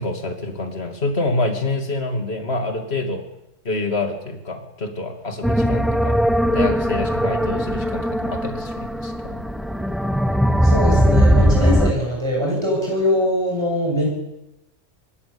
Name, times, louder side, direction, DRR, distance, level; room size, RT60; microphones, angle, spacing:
voice 1, 0.0-3.2 3.6-6.2 6.5-9.4, left 2 dB, 55° left, 4 dB, 3.0 m, -27 dB
sound 1, 5.4-11.9, equal, ahead, 0.9 m, -19 dB
voice 2, 10.6-14.1, equal, 20° right, -3 dB, 7.7 m, -22 dB
25.0 x 18.5 x 7.2 m, 0.90 s
omnidirectional pair, 1.3 m